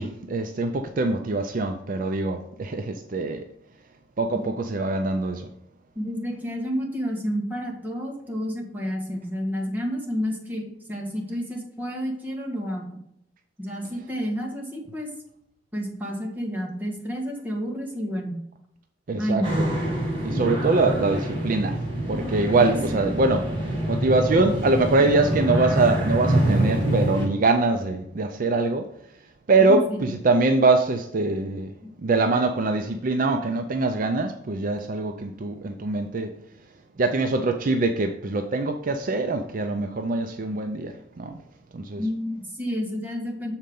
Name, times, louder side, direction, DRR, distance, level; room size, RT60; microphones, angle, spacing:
voice 1, 0.0-3.4 4.2-5.5 19.1-19.7 20.2-21.8 22.1-23.5 23.9-28.9 29.5-31.7 32.0-36.3 37.0-41.4 41.7-42.0, right 3 dB, 45° right, 6 dB, 0.5 m, -23 dB
voice 2, 5.9-13.0 13.6-15.1 15.7-18.4 19.2-19.5 22.6-23.1 29.6-30.0 42.0-43.5, equal, 10° right, -1 dB, 1.5 m, -30 dB
sound 1, 19.4-27.3, right 1 dB, 30° right, 2.0 m, -26 dB
6.4 x 4.4 x 5.2 m, 0.78 s
head